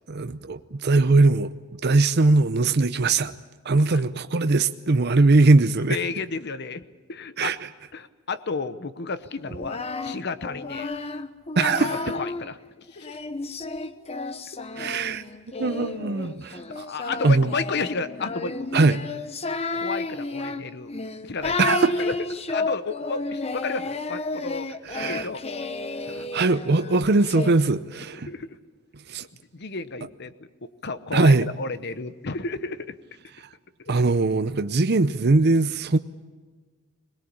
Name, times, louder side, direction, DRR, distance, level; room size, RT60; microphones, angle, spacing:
voice 1, 0.1-1.5 1.8-3.3 3.6-6.0 7.4-7.6 11.6-12.0 14.8-15.2 15.6-16.6 17.2-17.5 18.7-19.0 21.6-21.9 24.8-25.3 26.1-28.3 29.1-29.2 31.1-31.5 33.9-36.0, right 3 dB, 55° right, 0.7 m, -20 dB
voice 2, 5.9-7.6 7.9-10.9 11.6-13.2 16.7-18.7 19.7-20.9 21.2-21.6 22.0-22.2 22.5-24.7 25.1-25.4 28.2-28.6 29.2-29.3 29.5-30.3 30.6-32.9 33.8-34.0, left 4 dB, 55° left, 0.9 m, -32 dB
Singing, 9.4-12.5 13.0-27.5, left 3 dB, 30° left, 0.9 m, -32 dB
22.0 x 20.5 x 8.7 m
head